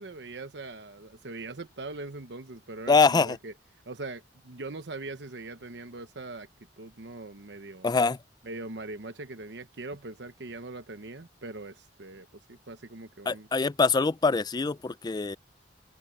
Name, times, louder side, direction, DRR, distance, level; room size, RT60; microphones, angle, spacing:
voice 1, 0.0-3.5 3.9-6.5 6.8-7.9 8.4-13.5, right 2 dB, 75° right, 1.0 m, -41 dB
voice 2, 2.9-3.4 7.8-8.2 13.3-15.4, left 4 dB, 25° left, 0.4 m, -24 dB
head